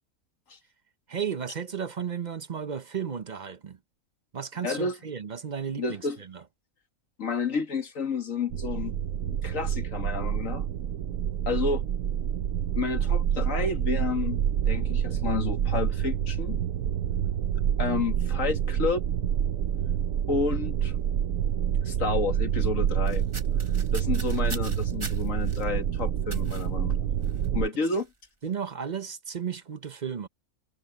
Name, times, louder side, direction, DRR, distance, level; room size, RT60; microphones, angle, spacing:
voice 1, 1.1-3.8 4.3-6.4 28.4-30.3, right 7 dB, 40° right, 0.7 m, -34 dB
voice 2, 4.6-5.0 5.8-6.2 7.2-9.0 9.2-10.6 11.5-11.8 12.8-16.6 17.8-19.1 20.3-20.9 21.8-23.2 23.9-27.1 27.5-28.1, left 4 dB, 65° left, 2.2 m, -30 dB
sound 1, 8.5-27.7, right 9 dB, 70° right, 1.1 m, -27 dB
sound 2, 23.1-25.6 26.3-26.7 27.2-27.5 27.8-28.1, right 3 dB, 20° right, 1.2 m, -42 dB
omnidirectional pair, 1.5 m